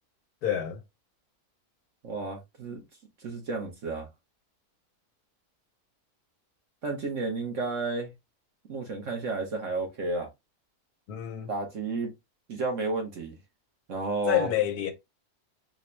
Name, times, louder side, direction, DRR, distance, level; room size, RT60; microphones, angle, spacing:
voice 1, 0.4-0.8 11.1-11.5 14.3-14.9, left 11 dB, 80° left, 1.3 m, -28 dB
voice 2, 2.0-2.8 3.2-4.1 6.8-8.1 8.7-10.3 11.5-12.1 12.5-13.4 13.9-14.5, right 3 dB, 55° right, 1.3 m, -31 dB
4.2 x 2.3 x 3.0 m
omnidirectional pair, 1.6 m